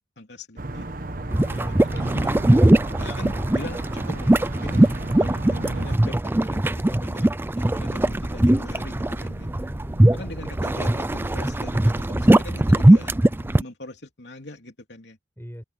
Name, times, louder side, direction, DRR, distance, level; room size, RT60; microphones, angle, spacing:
voice 1, 0.2-0.9 1.5-2.4 3.0-4.3 4.6-7.3 7.6-9.5 10.1-13.1 13.6-15.2, left 2 dB, 70° left, 3.5 m, -41 dB
sound 1, 0.6-6.0, right 2 dB, 50° right, 1.2 m, -33 dB
voice 2, 1.1-1.9 9.8-10.2 15.4-15.6, equal, 15° left, 6.2 m, -41 dB
sound 2, 1.3-13.6, right 1 dB, 10° right, 0.4 m, -20 dB
sound 3, 7.7-13.6, right 1 dB, 75° right, 2.9 m, -45 dB
head